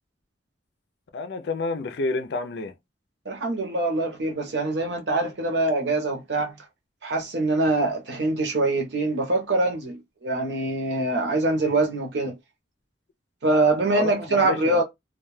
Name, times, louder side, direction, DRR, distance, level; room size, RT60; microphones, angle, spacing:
voice 1, 1.1-2.7 13.9-14.8, left 3 dB, 65° left, 0.4 m, -29 dB
voice 2, 3.3-6.5 7.0-12.3 13.4-14.8, right 2 dB, 70° right, 0.8 m, -24 dB
2.3 x 2.2 x 3.1 m
head